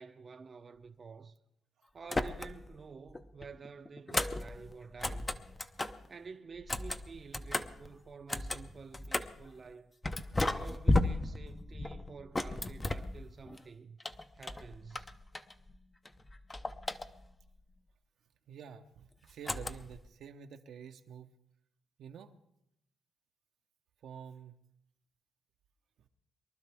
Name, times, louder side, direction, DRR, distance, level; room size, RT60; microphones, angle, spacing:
voice 1, 0.0-1.4 1.9-5.3 6.1-9.9 10.4-14.0 14.3-15.1, right 5 dB, 40° right, 0.6 m, -50 dB
sound 1, 2.0-2.8 3.1-6.1 6.5-9.5 10.0-13.6 14.0-15.8 16.0-17.5 19.4-20.1, left 2 dB, 20° left, 0.6 m, -35 dB
voice 2, 18.5-21.3 22.0-22.3 24.0-24.5, right 7 dB, 75° right, 0.8 m, -49 dB
23.5 x 12.0 x 3.5 m
cardioid pair, 90°, 0 cm